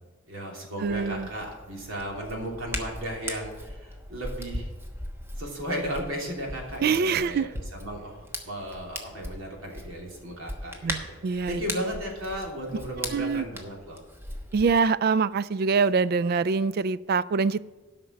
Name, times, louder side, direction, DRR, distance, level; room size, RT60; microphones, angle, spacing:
voice 1, 0.3-4.7 5.4-14.0, equal, 75° right, -1 dB, 3.0 m, -35 dB
Hands, 0.8-14.8, equal, 10° right, 1.1 m, -39 dB
voice 2, 0.8-1.3 6.8-7.5 10.8-11.6 13.1-13.5 14.5-17.6, right 5 dB, 50° right, 19 dB, 0.3 m, -24 dB
12.0 x 5.9 x 6.3 m, 1.3 s
head